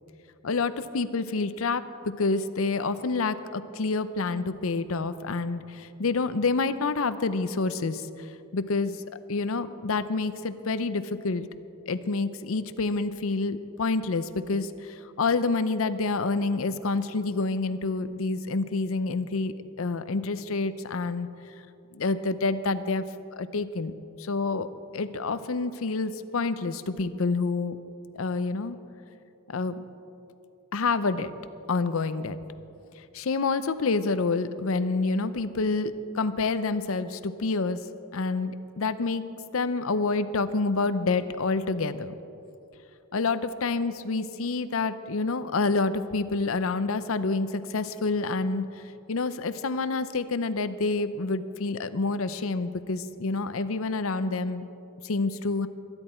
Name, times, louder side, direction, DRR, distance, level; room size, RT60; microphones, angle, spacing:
voice 1, 0.4-8.1 8.5-9.0 9.3-11.5 11.9-21.3 21.9-23.0 23.3-23.9 24.2-24.7 24.9-27.8 28.1-28.8 29.5-29.8 30.7-31.3 31.7-32.4 33.1-37.8 38.1-39.3 39.5-42.1 43.1-48.7 49.1-54.6 55.0-55.7, left 3 dB, 70° left, 12 dB, 0.6 m, -28 dB
22.0 x 11.0 x 4.4 m, 2.7 s
head